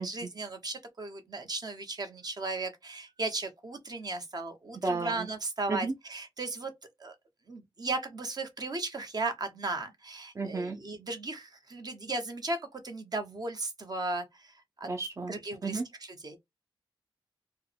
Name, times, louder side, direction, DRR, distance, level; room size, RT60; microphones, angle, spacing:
voice 1, 0.0-6.7 7.0-7.1 7.5-14.9 15.3-16.4, right 3 dB, 50° right, 1.0 m, -36 dB
voice 2, 4.8-5.3 5.7-5.9 10.4-10.8 14.8-15.3 15.6-15.8, right 3 dB, 35° right, 0.5 m, -32 dB
4.5 x 2.2 x 3.3 m
wide cardioid pair, 120°, 9 cm